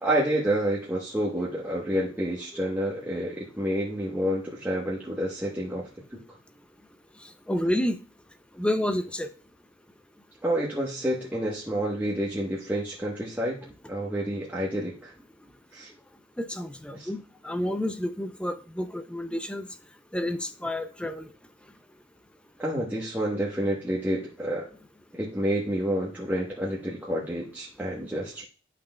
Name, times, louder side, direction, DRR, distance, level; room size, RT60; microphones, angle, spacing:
voice 1, 0.0-6.2 10.4-13.6 13.9-15.1 15.7-15.9 16.9-17.1 22.6-24.7 25.1-28.4, right 1 dB, 10° right, -6 dB, 1.0 m, -29 dB
voice 2, 7.2-8.0 8.6-9.3 16.4-19.7 20.1-21.3, left 1 dB, 5° left, 9 dB, 0.4 m, -30 dB
11.0 x 5.8 x 2.2 m, 0.39 s
head